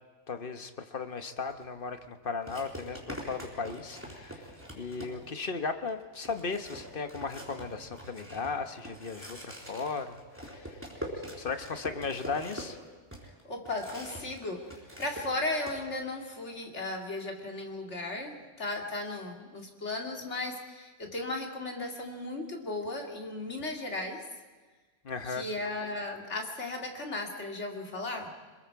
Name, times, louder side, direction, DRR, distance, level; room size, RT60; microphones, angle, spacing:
voice 1, 0.3-4.5 4.8-10.8 11.4-12.8 25.0-25.4, left 4 dB, 50° left, 8 dB, 1.3 m, -36 dB
sound 1, 1.5-1.6 2.5-5.5 5.9-6.0 6.2-14.4 14.6-15.8, equal, 10° right, 3.8 m, -44 dB
voice 2, 13.4-14.6 15.0-24.2 25.2-28.3, left 2 dB, 90° left, 2 dB, 2.7 m, -36 dB
25.5 x 21.5 x 4.7 m, 1.4 s
omnidirectional pair, 1.2 m